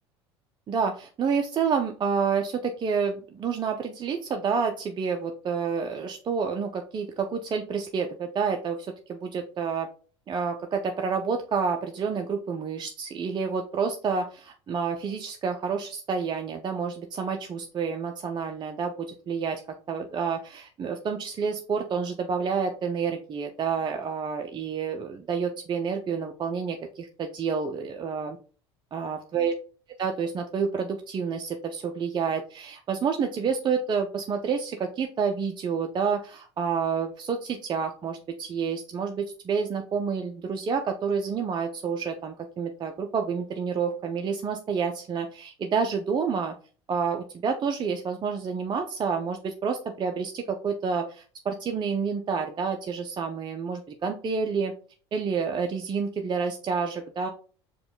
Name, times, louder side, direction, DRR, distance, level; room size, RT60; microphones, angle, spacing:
voice 1, 0.7-9.9 10.3-19.6 19.9-28.4 28.9-29.5 30.0-46.5 46.9-54.7 55.1-57.3, right 6 dB, 30° right, 4 dB, 0.5 m, -29 dB
4.7 x 2.3 x 3.8 m, 0.40 s
hypercardioid pair, 75°, 14 cm